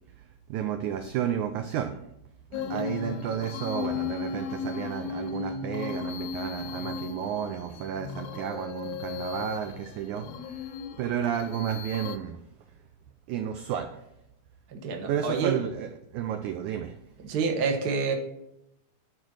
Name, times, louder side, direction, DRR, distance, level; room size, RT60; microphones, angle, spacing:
voice 1, 0.5-2.0 2.7-10.7 11.0-12.4 13.3-14.0 15.1-16.9, right 9 dB, 85° right, 7 dB, 1.7 m, -32 dB
sound 1, 2.5-12.2, left 6 dB, 90° left, 2.6 m, -36 dB
voice 2, 2.5-2.9 14.7-15.6 17.2-18.1, right 5 dB, 60° right, 2 dB, 1.0 m, -28 dB
11.0 x 4.4 x 6.2 m, 0.81 s
omnidirectional pair, 4.1 m